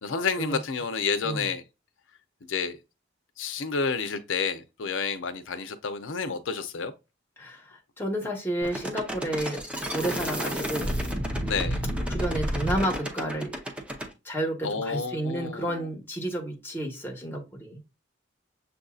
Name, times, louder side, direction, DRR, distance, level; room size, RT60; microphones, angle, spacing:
voice 1, 0.0-1.6 2.5-2.8 3.4-6.9 11.4-11.8 14.6-15.9, left 5 dB, 85° left, 0.6 m, -30 dB
voice 2, 7.4-9.6 9.9-11.0 12.1-13.6 14.2-17.8, right 1 dB, 10° left, 1.2 m, -31 dB
sound 1, 8.6-14.1, equal, 5° right, 0.7 m, -31 dB
7.2 x 2.6 x 2.3 m
head